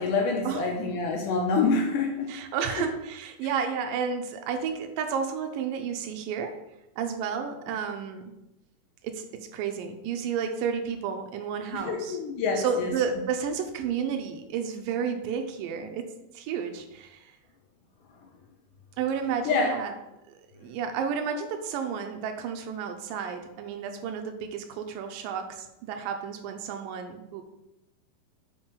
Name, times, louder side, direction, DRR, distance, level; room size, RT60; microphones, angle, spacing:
voice 1, 0.0-2.3 2.7-2.9 11.7-12.9 19.5-19.8 20.6-20.7, left 4 dB, 75° left, 2 dB, 1.9 m, -27 dB
voice 2, 2.3-6.6 7.0-8.2 9.0-12.2 12.6-16.1 16.3-17.3 19.0-19.9 20.6-27.4, right 7 dB, 80° right, 6 dB, 2.2 m, -31 dB
5.4 x 4.5 x 5.1 m, 0.90 s
omnidirectional pair, 4.3 m